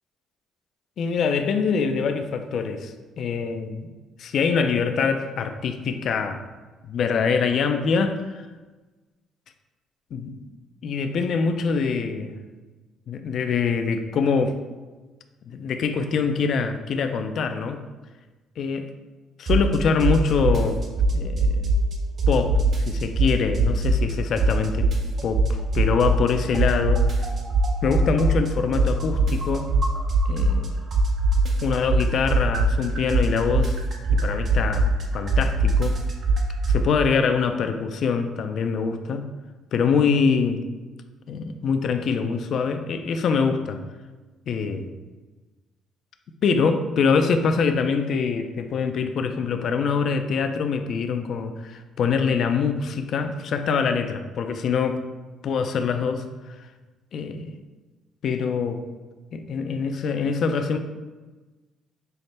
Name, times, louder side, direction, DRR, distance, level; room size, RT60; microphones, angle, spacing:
voice 1, 1.0-3.9 4.2-6.4 6.9-8.5 10.1-10.5 10.8-12.3 13.1-14.5 15.5-17.8 18.6-18.9 19.4-20.8 21.1-21.7 22.3-22.6 22.9-24.9 25.2-27.3 27.8-29.7 30.3-30.8 31.6-33.8 34.1-36.0 36.7-39.2 39.7-40.6 41.3-43.8 44.5-44.9 46.4-55.0 55.4-56.2 57.1-57.5 58.2-58.8 59.3-60.8, left 5 dB, 60° left, 7 dB, 0.3 m, -24 dB
sound 1, 19.5-19.7 20.0-21.9 22.2-24.1 24.4-26.3 26.5-30.7 30.9-36.8, right 2 dB, 55° right, 0.6 m, -21 dB
5.5 x 2.1 x 3.2 m, 1.2 s
supercardioid pair, 75°, 0 cm